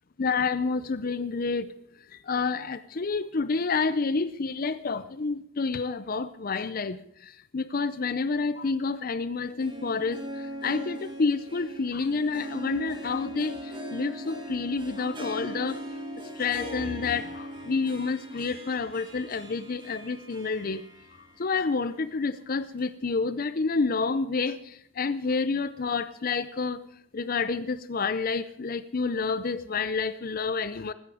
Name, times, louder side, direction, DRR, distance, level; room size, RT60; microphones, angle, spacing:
voice 1, 0.2-1.7 2.3-7.0 7.5-10.2 10.6-13.6 13.9-15.8 16.4-20.8 21.4-24.6 25.0-26.8 27.1-30.9, left 4 dB, 40° left, 14 dB, 0.5 m, -29 dB
Harp, 9.3-21.5 21.8-21.9 22.8-22.9, equal, 20° right, 2.7 m, -40 dB
15.5 x 13.5 x 4.9 m, 0.70 s
head